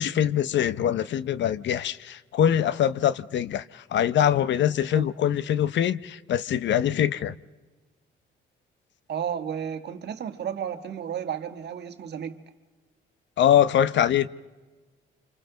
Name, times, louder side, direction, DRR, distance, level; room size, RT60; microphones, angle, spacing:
voice 1, 0.0-7.3 13.4-14.3, left 10 dB, 65° left, 0.7 m, -23 dB
voice 2, 9.1-12.4, right 8 dB, 60° right, 1.5 m, -32 dB
29.5 x 26.5 x 3.9 m
cardioid pair, 90°, 20 cm